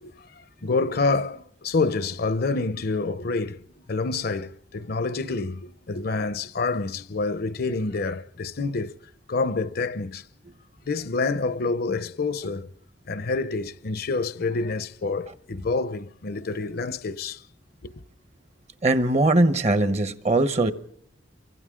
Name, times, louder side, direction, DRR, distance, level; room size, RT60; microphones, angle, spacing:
voice 1, 0.0-3.6 3.9-9.0 9.3-10.2 10.9-12.7 13.1-17.4 17.8-17.9, left 3 dB, 55° left, 0.7 m, -27 dB
voice 2, 18.8-20.7, right 2 dB, 35° right, 1.0 m, -20 dB
29.0 x 24.5 x 3.7 m
head